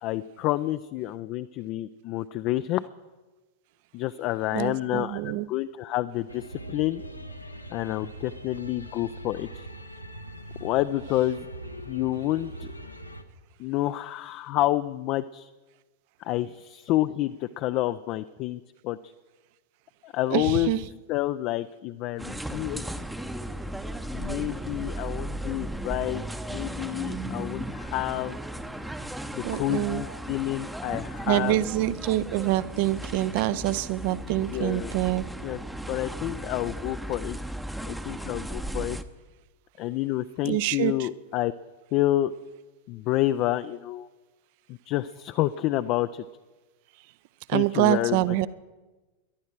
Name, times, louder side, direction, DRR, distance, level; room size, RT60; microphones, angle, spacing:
voice 1, 0.0-2.9 3.9-7.0 7.7-9.7 10.6-11.5 11.9-12.7 13.6-15.5 16.2-19.0 20.0-20.7 21.1-22.9 24.1-28.4 29.3-31.6 34.5-34.9 35.4-35.6 35.9-37.4 37.8-39.0 39.8-41.5 41.9-42.3 42.9-44.1 44.7-46.2 47.5-48.2, left 15 dB, 40° left, 11 dB, 0.4 m, -29 dB
voice 2, 4.5-5.5 20.3-20.8 29.4-30.0 31.3-35.3 40.4-41.1 47.5-48.5, right 15 dB, 50° right, 18 dB, 0.6 m, -26 dB
sound 1, 6.3-13.2, right 1 dB, 90° left, 0.9 m, -41 dB
sound 2, 22.2-39.0, right 1 dB, 5° right, 0.7 m, -36 dB
21.5 x 11.5 x 4.5 m, 1.2 s
figure-of-eight pair, 90°, 0 cm